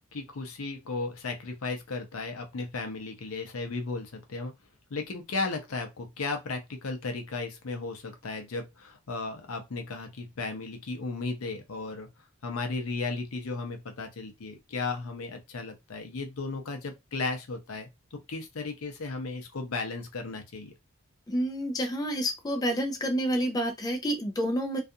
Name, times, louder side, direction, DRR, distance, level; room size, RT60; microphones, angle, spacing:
voice 1, 0.1-4.5 4.9-12.1 12.4-20.7, left 3 dB, 75° left, 0.6 m, -35 dB
voice 2, 21.3-24.8, equal, 15° left, 0.3 m, -29 dB
2.4 x 2.3 x 2.6 m
head